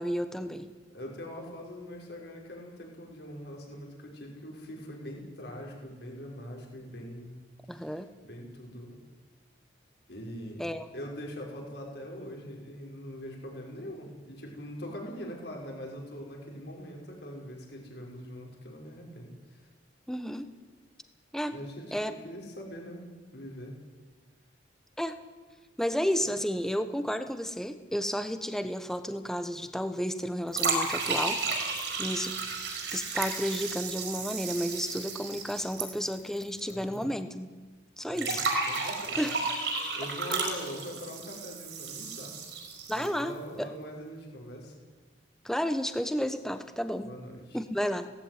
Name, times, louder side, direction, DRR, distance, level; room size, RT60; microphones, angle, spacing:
voice 1, 0.0-0.7 7.7-8.1 10.6-10.9 20.1-20.5 21.3-21.6 21.9-22.1 25.0-25.2 25.8-31.6 32.0-32.4 32.9-37.5 38.0-38.5 39.2-39.4 42.9-43.7 45.4-47.1 47.5-48.1, equal, ahead, 9 dB, 1.2 m, -32 dB
voice 2, 0.9-7.4 7.7-9.0 10.1-19.7 21.5-23.8 36.6-37.2 38.1-39.3 40.0-42.4 42.9-44.7 47.0-47.6, equal, 60° left, 0 dB, 5.6 m, -42 dB
sound 1, 30.5-36.7 37.0-37.1 38.2-43.2, right 4 dB, 65° right, 5.0 m, -33 dB
18.0 x 16.0 x 9.5 m, 1.3 s
head